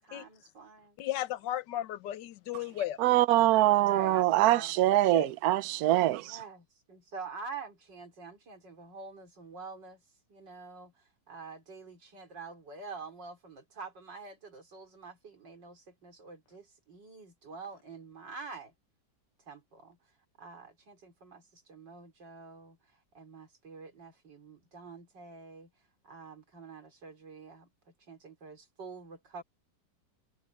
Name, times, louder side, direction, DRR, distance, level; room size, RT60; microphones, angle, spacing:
voice 1, 0.0-1.0 3.6-4.7 6.1-10.0 10.3-18.7 19.5-20.0 20.4-22.8 23.1-25.7 26.0-27.7 28.1-29.4, right 4 dB, 90° right, 4.4 m, -47 dB
voice 2, 1.0-3.0 4.8-5.3, left 12 dB, 85° left, 1.4 m, -35 dB
voice 3, 3.0-6.4, right 15 dB, 70° right, 1.0 m, -24 dB
omnidirectional pair, 1.9 m